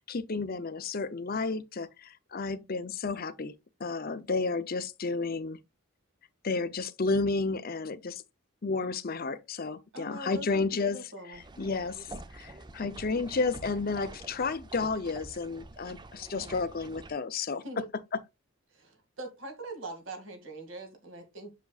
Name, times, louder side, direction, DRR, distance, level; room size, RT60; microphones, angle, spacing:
voice 1, 0.0-3.5 3.8-5.6 6.4-8.2 8.6-17.8 18.1-18.2, left 4 dB, 45° left, 0.6 m, -32 dB
voice 2, 9.9-11.4 11.9-12.0 16.3-16.6 17.6-17.9 18.7-21.5, right 2 dB, 60° right, 2.1 m, -42 dB
sound 1, 11.3-17.1, right 2 dB, 20° right, 0.5 m, -47 dB
7.1 x 6.6 x 2.4 m
head